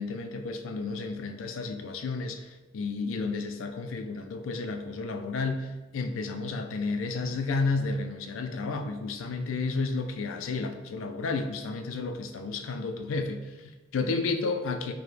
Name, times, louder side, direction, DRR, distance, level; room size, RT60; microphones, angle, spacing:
voice 1, 0.0-14.9, left 3 dB, 80° left, 6 dB, 0.4 m, -32 dB
4.7 x 2.1 x 3.2 m, 1.2 s
head